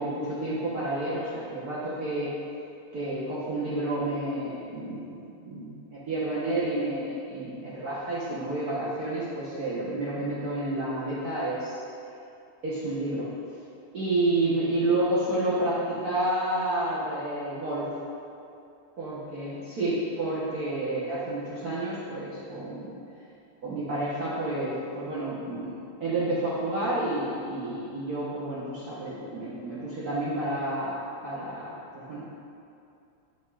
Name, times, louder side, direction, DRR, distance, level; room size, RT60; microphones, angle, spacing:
voice 1, 0.0-2.3 2.9-5.2 5.4-11.8 12.6-13.6 13.9-17.9 19.0-23.0 23.6-25.7 26.0-31.0 31.2-32.2, right 1 dB, 50° right, -9 dB, 1.5 m, -30 dB
9.5 x 8.2 x 2.4 m, 2.6 s
omnidirectional pair, 2.3 m